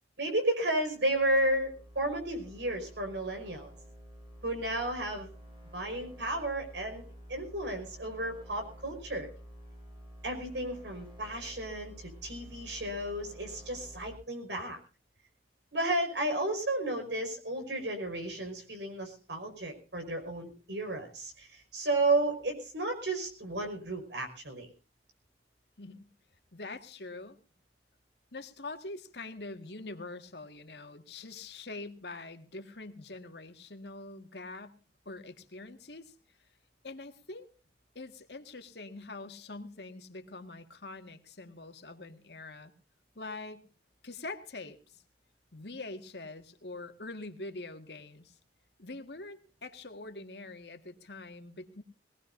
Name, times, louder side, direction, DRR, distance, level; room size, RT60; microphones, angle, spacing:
voice 1, 0.2-3.7 4.4-5.3 5.7-9.3 10.2-14.8 15.7-24.7, right 1 dB, 80° right, 5 dB, 5.4 m, -33 dB
sound 1, 0.7-14.2, equal, 30° right, 6.4 m, -51 dB
voice 2, 25.8-26.1 26.5-27.4 28.3-34.8 35.1-36.1 36.8-37.5 38.0-42.7 43.2-43.6 44.0-45.0 45.5-48.4 48.8-51.8, left 2 dB, 70° left, 7 dB, 1.8 m, -44 dB
22.0 x 18.5 x 2.6 m, 0.33 s
head